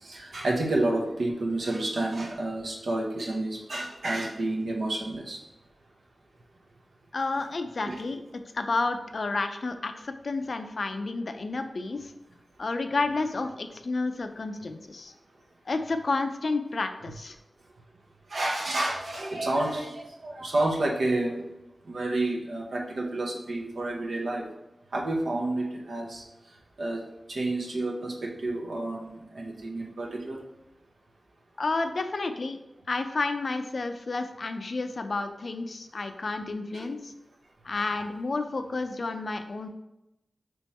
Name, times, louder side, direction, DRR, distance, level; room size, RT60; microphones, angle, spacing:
voice 1, 0.0-5.4 7.8-8.0 18.3-21.4 21.8-24.4 24.9-26.2 26.8-27.0 27.3-30.4 36.7-36.9 37.8-38.0, right 2 dB, 80° right, -1 dB, 0.8 m, -30 dB
voice 2, 7.1-12.1 12.6-15.1 15.7-17.4 31.6-32.6 32.9-37.1 37.6-39.7, left 3 dB, 65° left, 8 dB, 0.4 m, -31 dB
3.5 x 3.0 x 4.2 m, 0.92 s
wide cardioid pair, 65°, 0 cm